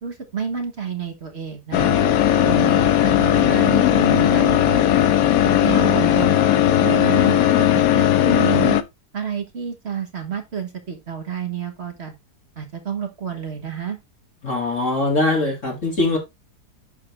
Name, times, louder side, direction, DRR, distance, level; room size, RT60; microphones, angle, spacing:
voice 1, 0.0-2.0 2.4-4.8 5.4-6.5 6.8-8.8 9.1-12.1 12.6-14.0, right 7 dB, 40° right, 1.6 m, -29 dB
Air Conditioning Engine, 1.7-8.8, left 11 dB, 70° left, 1.0 m, -17 dB
voice 2, 14.4-16.2, left 2 dB, 50° left, 2.6 m, -21 dB
11.0 x 3.8 x 3.3 m
omnidirectional pair, 1.7 m